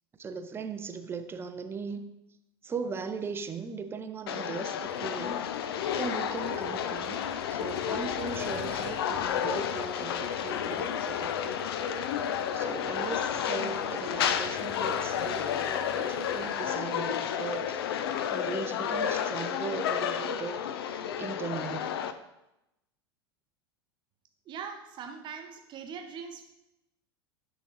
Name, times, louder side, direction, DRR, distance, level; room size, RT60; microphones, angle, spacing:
voice 1, 0.2-2.1 2.6-5.4 6.0-11.5 12.5-17.9 18.3-22.0, right 5 dB, 15° right, 9 dB, 0.4 m, -38 dB
sound 1, 4.3-22.1, left 8 dB, 65° left, 0.4 m, -31 dB
Motor vehicle (road), 4.8-21.0, left 4 dB, 40° left, 1.1 m, -52 dB
voice 2, 24.4-26.5, right 6 dB, 35° right, 5 dB, 0.9 m, -41 dB
8.9 x 3.8 x 3.2 m, 0.89 s
figure-of-eight pair, 85°, 14 cm